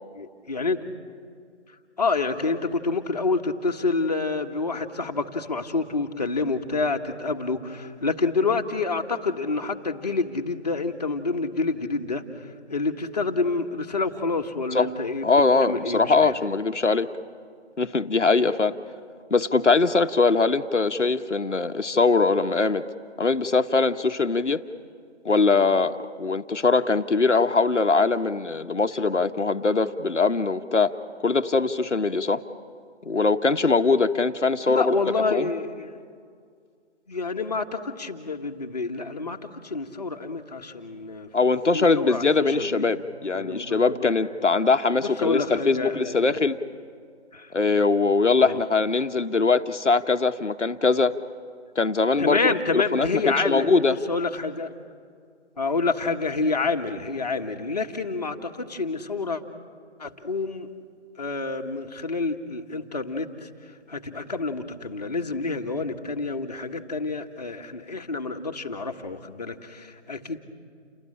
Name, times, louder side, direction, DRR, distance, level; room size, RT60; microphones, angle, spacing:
voice 1, 0.2-0.9 2.0-12.2 12.7-15.3 15.6-16.3 34.6-36.0 37.1-39.4 39.6-41.3 41.7-42.2 42.6-42.9 43.3-44.1 45.0-46.5 47.3-47.5 48.4-48.6 52.2-54.7 55.6-59.4 60.0-60.7 61.2-63.5 63.9-70.4, left 3 dB, 35° left, 4 dB, 1.5 m, -28 dB
voice 2, 15.2-17.1 17.8-18.8 19.3-22.8 23.2-24.6 25.2-30.9 31.2-32.4 33.0-34.9 35.3-35.5 41.3-46.6 47.5-51.2 51.8-54.0, left 4 dB, 80° left, 9 dB, 1.2 m, -22 dB
29.0 x 19.5 x 8.7 m, 2.1 s
figure-of-eight pair, 165°, 35 cm